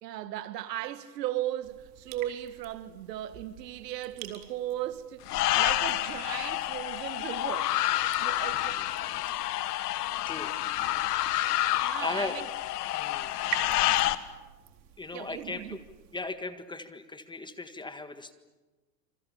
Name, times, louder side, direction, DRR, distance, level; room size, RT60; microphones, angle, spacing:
voice 1, 0.0-7.7 8.2-8.8 11.8-12.5 15.1-15.8, right 13 dB, 70° right, 1.9 m, -37 dB
sound 1, 1.6-16.2, right 10 dB, 45° right, 4.2 m, -47 dB
sound 2, 5.3-14.2, left 15 dB, 65° left, 1.7 m, -29 dB
voice 2, 12.0-12.4 12.9-13.3 13.7-13.9 15.0-15.8 16.1-18.3, left 3 dB, 10° left, 1.7 m, -37 dB
28.5 x 28.0 x 7.2 m
hypercardioid pair, 115°, 50 cm